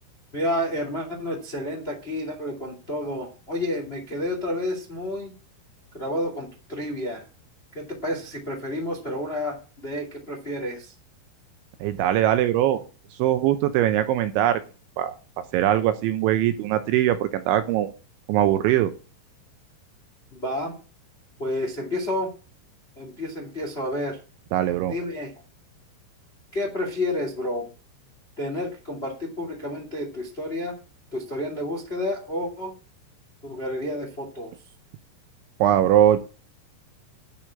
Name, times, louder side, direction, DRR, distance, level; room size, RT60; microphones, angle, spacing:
voice 1, 0.3-5.3 5.9-7.2 7.7-10.9 20.3-20.7 21.4-22.3 22.9-24.2 24.9-25.3 26.5-27.7 28.4-30.7 31.1-32.7 33.4-34.5, left 1 dB, 35° left, 2 dB, 0.9 m, -30 dB
voice 2, 11.8-12.8 13.2-14.6 15.0-15.2 15.5-17.9 18.3-18.9 24.5-24.9 35.6-36.2, right 12 dB, 80° right, 9 dB, 2.9 m, -21 dB
12.5 x 4.9 x 8.5 m, 0.35 s
omnidirectional pair, 5.9 m